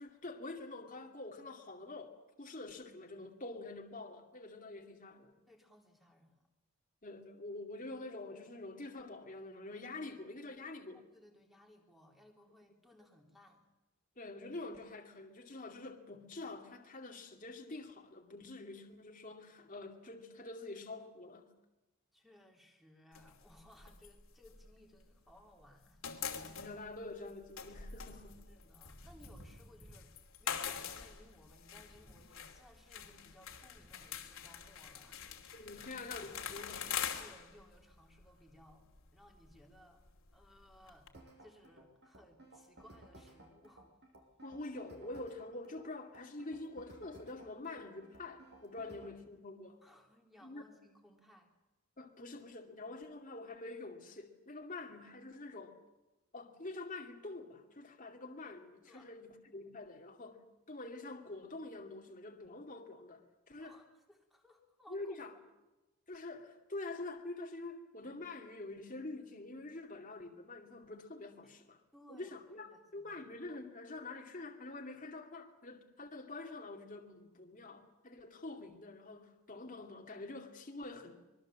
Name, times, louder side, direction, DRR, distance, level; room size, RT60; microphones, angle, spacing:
voice 1, 0.0-5.4 7.0-11.0 14.2-21.5 26.4-28.4 33.0-33.2 35.5-36.9 44.4-49.8 50.4-50.7 52.0-55.8 56.3-63.8 64.9-65.3 66.1-71.8 72.1-81.2, left 2 dB, 35° left, 1 dB, 2.3 m, -46 dB
voice 2, 5.5-6.4 11.1-13.6 22.1-26.0 28.5-30.1 30.4-35.2 37.2-41.1 41.4-43.9 49.8-51.5 58.8-59.1 63.5-65.2 71.4-71.6 71.9-73.1, equal, ahead, 1 dB, 3.5 m, -62 dB
sound 1, 23.1-25.4 25.7-41.1, left 8 dB, 65° left, 2.8 m, -45 dB
sound 2, 28.6-45.4, equal, 25° right, 5.8 m, -66 dB
sound 3, 41.1-49.2, right 1 dB, 50° right, 6.0 m, -57 dB
25.0 x 22.0 x 7.5 m, 1.0 s
head